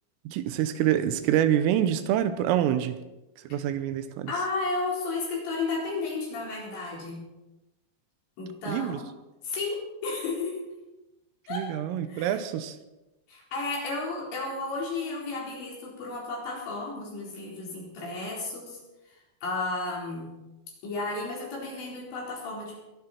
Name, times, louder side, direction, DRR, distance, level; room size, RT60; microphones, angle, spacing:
voice 1, 0.3-3.0 3.5-4.3 8.7-9.0 11.5-12.8, right 11 dB, 85° right, 3.5 m, -26 dB
voice 2, 4.3-7.2 8.4-9.1 9.4-10.6 11.5-11.7 12.1-12.4 13.3-18.8 19.4-20.3 20.8-22.8, left 3 dB, 60° left, 6.6 m, -33 dB
22.5 x 11.5 x 4.4 m
omnidirectional pair, 5.8 m